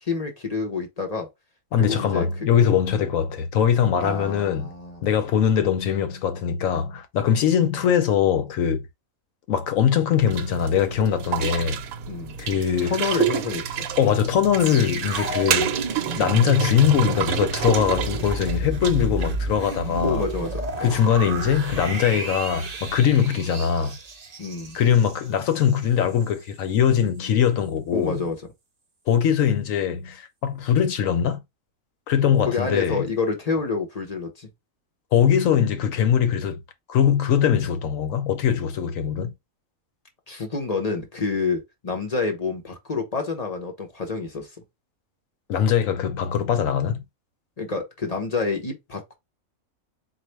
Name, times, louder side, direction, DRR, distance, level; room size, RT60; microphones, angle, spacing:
voice 1, 0.0-1.3 1.8-2.3 4.0-5.0 12.1-12.4 12.8-13.9 20.0-20.9 24.4-24.8 27.9-28.4 32.5-34.5 40.3-44.5 47.6-49.1, left 4 dB, 35° left, 0.8 m, -28 dB
voice 2, 1.7-4.7 5.0-8.9 9.5-11.8 12.4-13.0 14.0-15.8 16.2-20.2 20.8-24.0 24.7-28.2 29.1-31.4 32.1-33.1 35.1-36.6 36.9-39.3 45.5-47.0, left 8 dB, 75° left, 1.1 m, -21 dB
sound 1, 10.2-19.4, right 9 dB, 80° right, 1.0 m, -29 dB
sound 2, 14.6-25.8 26.1-26.3, right 2 dB, 40° right, 0.7 m, -31 dB
4.2 x 2.5 x 3.2 m
omnidirectional pair, 1.4 m